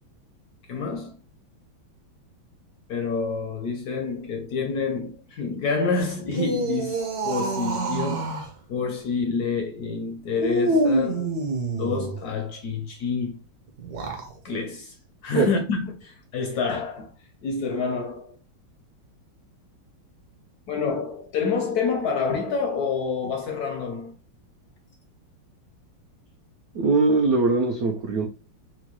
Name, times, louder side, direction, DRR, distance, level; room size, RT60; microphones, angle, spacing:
voice 1, 0.7-1.1 2.9-8.4 8.7-11.3 11.7-13.4 14.4-14.9 15.2-17.1 17.4-18.4 20.7-24.1, left 5 dB, 75° left, 0.9 m, -28 dB
sound 1, 6.2-8.5 10.4-12.2 13.8-14.3, right 2 dB, 60° right, 1.3 m, -26 dB
voice 2, 26.7-28.3, right 3 dB, 85° right, 0.8 m, -21 dB
4.5 x 2.2 x 2.9 m
omnidirectional pair, 2.2 m